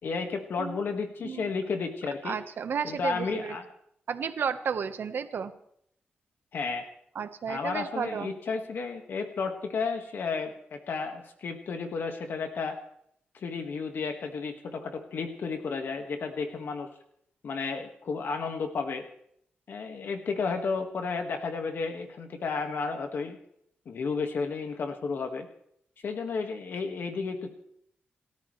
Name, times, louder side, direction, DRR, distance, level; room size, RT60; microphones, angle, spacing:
voice 1, 0.0-2.4 2.8-3.7 6.5-6.8 7.5-12.8 13.3-16.9 17.4-19.0 19.7-23.4 23.9-25.5 26.0-27.5, left 4 dB, 70° left, 5 dB, 1.8 m, -32 dB
voice 2, 2.2-3.6 4.1-5.5 7.1-8.3, right 6 dB, 70° right, 9 dB, 1.3 m, -32 dB
29.0 x 13.5 x 3.3 m, 0.69 s
wide cardioid pair, 125°, 4 cm